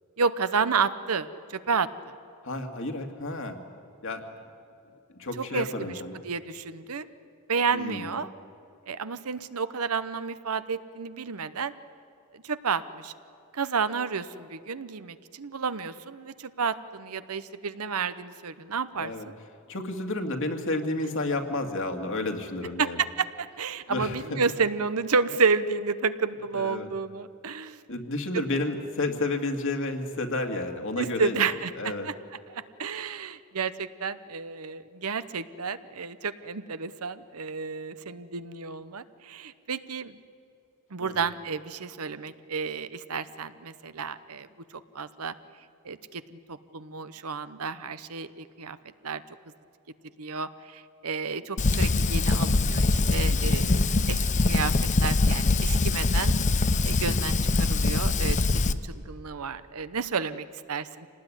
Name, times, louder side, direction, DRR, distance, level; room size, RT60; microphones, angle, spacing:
voice 1, 0.2-1.9 5.4-5.9 6.2-7.1 7.5-8.3 8.9-11.7 12.3-13.1 13.5-19.3 22.8-27.8 28.3-28.4 31.0-32.1 32.5-40.2 40.9-44.5 44.9-45.3 45.8-46.2 46.5-48.8 49.0-49.2 50.2-54.2 54.5-54.7 55.0-56.3 56.8-58.4 58.7-61.1, right 5 dB, 80° right, 13 dB, 0.9 m, -31 dB
voice 2, 2.4-3.6 4.0-4.2 5.2-6.2 7.7-8.1 19.0-19.3 19.7-23.0 23.9-24.4 26.5-26.9 27.9-31.4 31.8-32.1 41.0-41.2 53.3-53.6, left 2 dB, 60° left, 4 dB, 2.3 m, -31 dB
Fire, 51.6-58.7, left 3 dB, 35° left, 0.7 m, -23 dB
26.0 x 19.0 x 9.9 m, 2.6 s
head